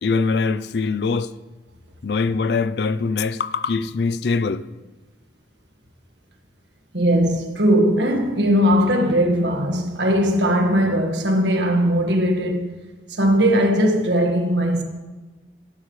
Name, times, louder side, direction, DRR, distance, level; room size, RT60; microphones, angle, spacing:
voice 1, 0.0-1.3 2.0-4.7, left 4 dB, 65° left, 0.4 m, -22 dB
voice 2, 6.9-12.6 13.2-14.8, equal, 80° right, 1.6 m, -19 dB
13.0 x 12.0 x 3.2 m
head